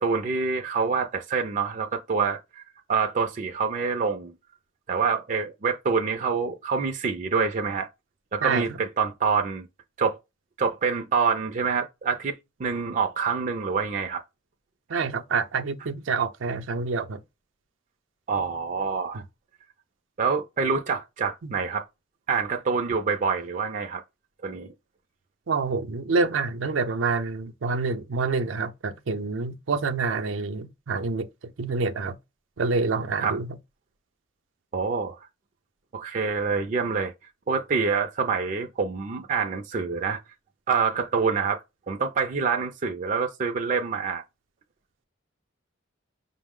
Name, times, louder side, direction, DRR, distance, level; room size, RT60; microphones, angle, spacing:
voice 1, 0.0-4.3 4.9-7.9 8.3-9.7 10.0-10.2 10.6-12.3 12.6-14.2 18.3-19.2 20.2-21.8 22.3-24.0 24.4-24.7 33.2-33.4 34.7-35.3 35.9-37.1 37.5-40.2 40.7-41.6 41.9-44.2, right 5 dB, 40° right, 0.4 m, -26 dB
voice 2, 8.4-8.8 14.9-17.2 25.5-31.3 31.6-32.1 32.6-33.5, right 4 dB, 90° right, 0.6 m, -27 dB
5.4 x 2.0 x 3.6 m
head